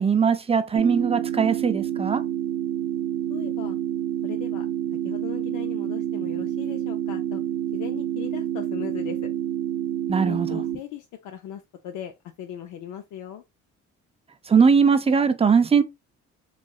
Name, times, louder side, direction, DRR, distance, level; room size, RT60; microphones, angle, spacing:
voice 1, 0.0-2.2 10.1-10.6 14.5-15.8, right 6 dB, 20° right, 0.4 m, -20 dB
sound 1, 0.7-10.8, right 11 dB, 90° right, 0.7 m, -28 dB
voice 2, 3.3-3.8 4.2-4.7 5.0-7.4 7.7-9.3 10.2-13.4, left 10 dB, 80° left, 0.5 m, -38 dB
3.2 x 2.6 x 2.3 m
cardioid pair, 90°, 30 cm